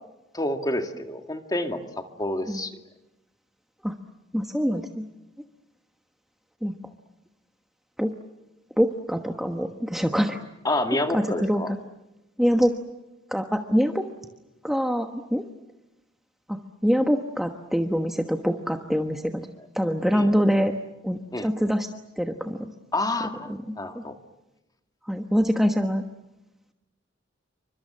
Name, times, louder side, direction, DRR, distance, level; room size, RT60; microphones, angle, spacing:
voice 1, 0.3-2.8 10.6-11.7 20.1-20.3 21.3-21.5 22.9-24.2, left 1 dB, 20° left, 5 dB, 2.2 m, -28 dB
voice 2, 4.3-5.0 6.6-6.7 8.0-8.1 8.8-10.4 11.1-11.6 12.4-12.7 13.3-14.1 14.6-15.4 16.5-19.4 19.7-20.7 21.0-21.9 22.2-22.7 23.7-23.8 25.1-26.0, equal, ahead, 4 dB, 1.2 m, -24 dB
29.0 x 25.0 x 7.6 m, 0.97 s
head